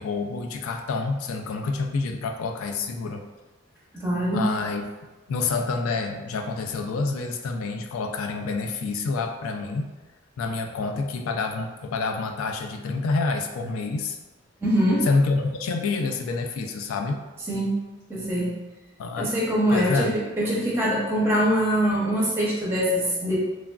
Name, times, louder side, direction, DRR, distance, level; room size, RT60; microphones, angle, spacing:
voice 1, 0.0-3.2 4.3-4.8 5.3-9.9 10.4-14.2 15.0-17.2 19.0-19.3 19.7-20.1, left 3 dB, 85° left, 5 dB, 0.3 m, -27 dB
voice 2, 3.9-4.5 14.6-15.0 17.5-17.7 18.1-18.5 19.2-23.4, equal, 10° right, -5 dB, 0.6 m, -23 dB
3.0 x 2.4 x 2.2 m, 1.1 s
head